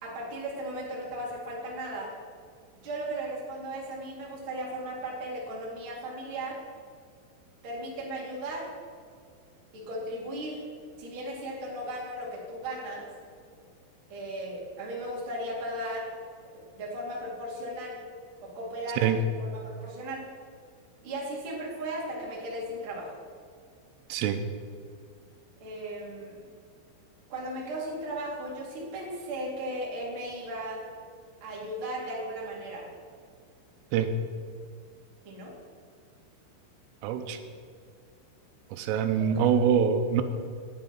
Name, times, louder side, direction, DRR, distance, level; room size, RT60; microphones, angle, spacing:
voice 1, 0.0-2.1 2.8-6.6 7.6-8.7 9.7-10.6 11.0-13.1 14.1-16.1 16.7-18.0 18.4-19.2 19.6-20.2 21.0-23.1 25.6-26.4 27.3-30.8 31.4-32.9 35.2-35.5 39.3-39.5, right 1 dB, 45° right, -4 dB, 1.7 m, -36 dB
voice 2, 24.1-24.4 33.9-34.2 37.0-37.4 38.7-40.2, right 7 dB, 85° right, 8 dB, 3.1 m, -24 dB
16.0 x 9.2 x 3.9 m, 2.1 s
omnidirectional pair, 6.0 m